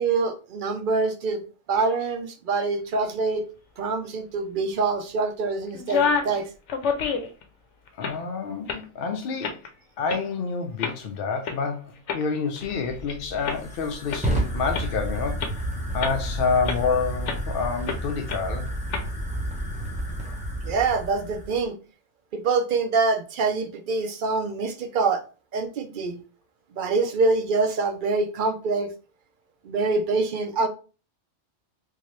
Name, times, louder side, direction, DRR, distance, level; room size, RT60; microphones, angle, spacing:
voice 1, 0.0-3.4 3.8-6.5 20.6-21.8 22.3-25.2 25.5-26.2 26.7-28.9 29.6-30.7, right 4 dB, 60° right, 0.6 m, -25 dB
sound 1, 5.7-6.4 6.7-7.4 7.9-8.2 8.7-8.8 9.4-9.7 10.1-10.2 10.8-10.9 11.4-11.6 12.1-13.1 13.5-13.6 14.1-14.2 14.7-14.9 15.4-15.5 16.0-16.3 16.7-16.8 17.3-17.4 17.9-18.0 18.3-18.4 18.9-19.0, left 5 dB, 85° left, 1.0 m, -27 dB
voice 2, 7.9-9.6 10.0-15.6 15.9-18.7, left 5 dB, 60° left, 0.7 m, -28 dB
Fire, 12.7-21.6, right 1 dB, 5° right, 0.7 m, -31 dB
3.7 x 2.7 x 3.1 m
omnidirectional pair, 1.2 m